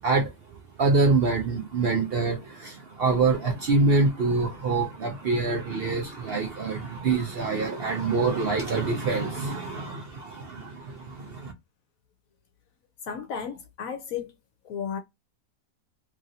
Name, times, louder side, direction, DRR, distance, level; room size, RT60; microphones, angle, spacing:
voice 1, 0.0-11.5, right 3 dB, 60° right, 0.6 m, -25 dB
voice 2, 13.1-14.3 14.7-15.0, left 7 dB, 70° left, 1.0 m, -33 dB
3.0 x 2.6 x 2.6 m
omnidirectional pair, 1.6 m